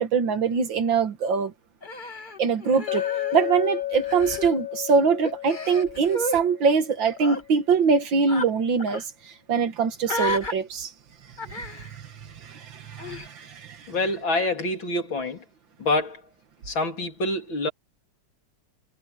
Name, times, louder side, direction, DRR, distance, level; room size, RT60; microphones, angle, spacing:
voice 1, 0.0-1.5 2.4-10.9 11.5-11.6 11.9-12.1 12.4-13.9, right 5 dB, 75° right, 2.2 m, -23 dB
Human voice, 1.8-3.6 3.9-4.5 5.2-6.4 7.1-7.4 8.3-8.5 8.8-9.0 10.0-10.5 11.4-11.9 13.0-13.3, left 1 dB, 25° left, 1.7 m, -32 dB
Chink clink, 2.9-7.3, left 12 dB, 40° left, 3.1 m, -32 dB
voice 2, 13.9-15.4 15.8-16.2 16.6-17.7, left 2 dB, 90° left, 4.2 m, -26 dB
omnidirectional pair, 2.1 m